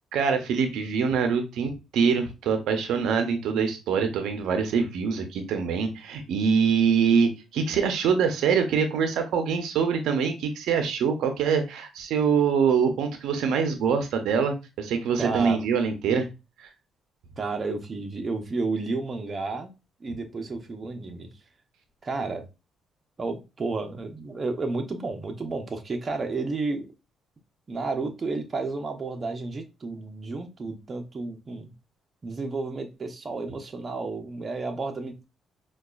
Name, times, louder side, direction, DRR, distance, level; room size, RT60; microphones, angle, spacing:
voice 1, 0.1-16.3, right 6 dB, 80° right, 6 dB, 0.5 m, -24 dB
voice 2, 15.2-15.6 17.4-19.7 20.0-21.3 22.0-22.4 23.2-26.9 27.7-31.7 32.2-35.2, right 3 dB, 35° right, 4 dB, 0.6 m, -31 dB
4.7 x 2.3 x 2.3 m, 0.27 s
cardioid pair, 90°, 0 cm